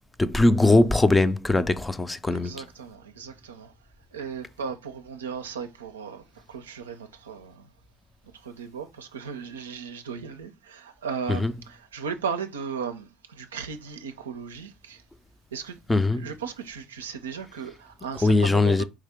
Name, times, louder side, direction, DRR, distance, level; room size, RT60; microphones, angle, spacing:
voice 1, 0.2-2.6 11.3-11.5 15.9-16.3 18.2-18.8, left 2 dB, 15° left, 0.5 m, -21 dB
voice 2, 2.3-3.7 4.1-6.2 6.5-7.7 8.4-15.0 15.5-15.8 16.1-18.8, right 6 dB, 90° right, 0.4 m, -36 dB
4.7 x 2.8 x 3.4 m
hypercardioid pair, 65°, 0 cm